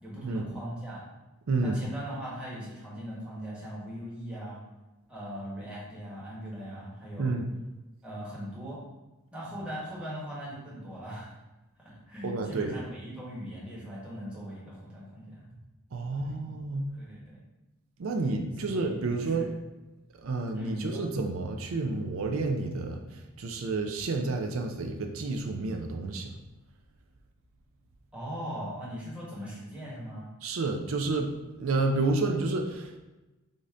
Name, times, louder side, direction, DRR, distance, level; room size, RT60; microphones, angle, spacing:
voice 1, 0.0-1.0 1.6-4.6 5.1-7.4 8.0-8.8 9.3-11.4 12.1-15.4 16.2-16.4 16.9-17.4 18.6-19.5 20.5-21.1 28.1-30.3, equal, 5° right, -8 dB, 1.3 m, -40 dB
voice 2, 1.5-1.8 7.2-7.5 12.2-12.8 15.9-16.9 18.0-19.5 20.2-26.4 30.4-33.0, right 3 dB, 65° right, 3 dB, 0.4 m, -30 dB
5.2 x 2.7 x 3.7 m, 1.1 s
head